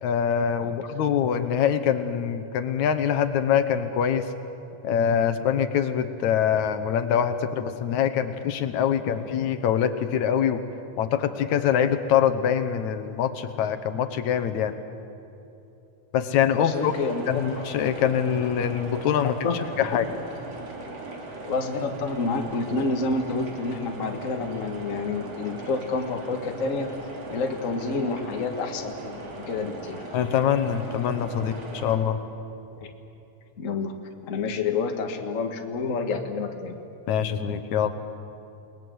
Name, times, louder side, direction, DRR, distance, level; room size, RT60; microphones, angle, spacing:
voice 1, 0.0-4.3 4.8-10.6 11.0-14.7 16.1-16.9 17.3-20.1 30.1-32.2 37.1-37.9, left 8 dB, 75° left, 9 dB, 2.3 m, -24 dB
voice 2, 16.6-17.2 19.4-19.9 21.4-26.9 27.3-30.0 32.8-32.9 33.6-33.9 34.2-36.8, left 4 dB, 35° left, 4 dB, 1.5 m, -29 dB
sound 1, 16.7-32.0, right 3 dB, 55° right, 3.9 m, -39 dB
29.0 x 20.5 x 7.9 m, 2.8 s
omnidirectional pair, 3.4 m